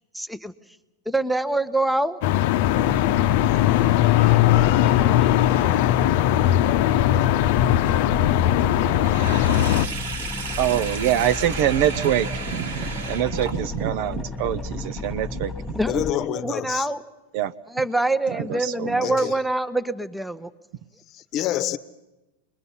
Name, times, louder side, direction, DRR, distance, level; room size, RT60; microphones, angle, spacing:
voice 1, 0.1-0.5 1.1-2.2 4.2-5.3 5.6-5.7 15.7-17.0 17.7-20.5, right 2 dB, 5° right, 1.0 m, -26 dB
sound 1, 2.2-9.9, left 13 dB, 60° left, 0.7 m, -19 dB
sound 2, 2.6-16.1, left 4 dB, 20° left, 1.3 m, -33 dB
Sink (filling or washing), 9.0-13.9, right 4 dB, 80° right, 2.7 m, -34 dB
voice 2, 10.6-15.5 17.3-17.5 18.3-19.1, right 11 dB, 55° right, 0.7 m, -24 dB
voice 3, 15.9-16.9 19.0-19.4 21.1-21.8, left 12 dB, 40° left, 1.1 m, -27 dB
27.0 x 21.5 x 5.6 m
hypercardioid pair, 105°, 0 cm